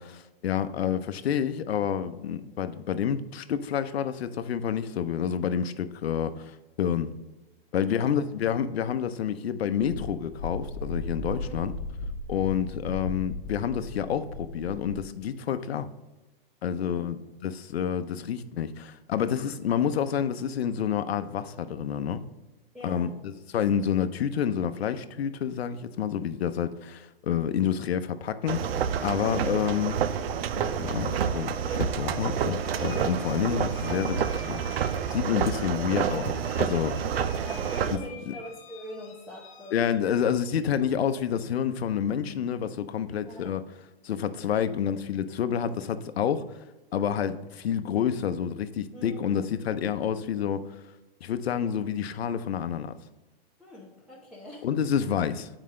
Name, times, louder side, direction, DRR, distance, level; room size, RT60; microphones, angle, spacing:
voice 1, 0.0-7.1 7.7-11.7 12.3-15.9 16.6-22.2 22.8-28.6 29.0-30.0 30.6-34.6 35.1-36.9 37.9-38.0 38.3-38.4 39.7-43.6 44.0-46.6 46.9-50.6 51.2-52.9 54.6-55.5, left 8 dB, 85° left, 12 dB, 0.7 m, -28 dB
voice 2, 7.8-8.2 11.3-11.7 16.8-17.1 22.7-23.2 37.4-39.9 43.2-43.5 48.9-49.5 53.6-54.7, equal, 5° right, -5 dB, 0.8 m, -44 dB
Wind, 9.8-15.1, left 2 dB, 55° left, 1.0 m, -36 dB
sound 1, 28.5-38.0, right 8 dB, 70° right, 0.6 m, -29 dB
sound 2, 31.0-39.9, left 6 dB, 30° left, 1.1 m, -50 dB
7.5 x 4.9 x 3.7 m, 1.1 s
hypercardioid pair, 155°, 30 cm